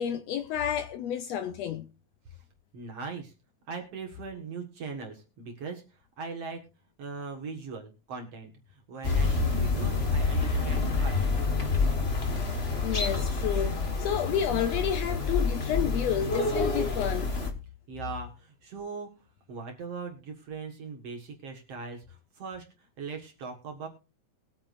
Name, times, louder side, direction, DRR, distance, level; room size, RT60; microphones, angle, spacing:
voice 1, 0.0-1.9 12.8-17.3, left 9 dB, 75° left, 1.6 m, -30 dB
voice 2, 2.7-3.3 3.7-5.8 6.2-6.6 7.0-11.4 15.8-16.0 17.9-19.1 19.5-22.6 23.0-23.9, right 4 dB, 55° right, 2.5 m, -40 dB
sound 1, 9.0-17.5, left 3 dB, 35° left, 1.1 m, -28 dB
21.0 x 8.8 x 2.6 m
omnidirectional pair, 3.5 m